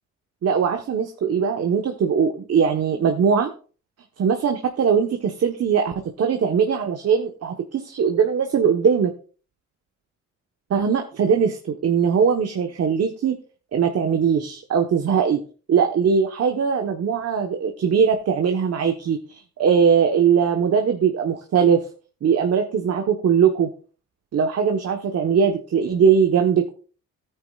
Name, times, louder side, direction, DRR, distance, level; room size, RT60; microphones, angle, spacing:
voice 1, 0.4-3.5 4.2-9.1 10.7-13.3 13.7-15.4 15.7-21.8 22.2-23.7 24.3-26.7, right 7 dB, 55° right, 4 dB, 1.3 m, -20 dB
13.5 x 9.7 x 2.5 m, 0.37 s
cardioid pair, 90°, 30 cm